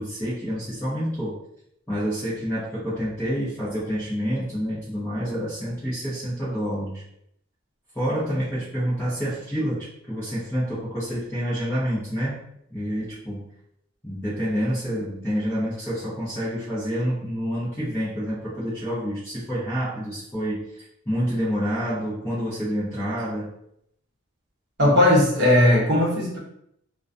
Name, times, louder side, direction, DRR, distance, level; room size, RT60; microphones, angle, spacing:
voice 1, 0.0-1.4 1.9-7.0 7.9-13.5 14.0-20.7 21.1-23.5, equal, 10° left, -11 dB, 0.6 m, -28 dB
voice 2, 24.8-26.4, left 1 dB, 50° right, -3 dB, 0.7 m, -18 dB
2.3 x 2.2 x 2.5 m, 0.73 s
head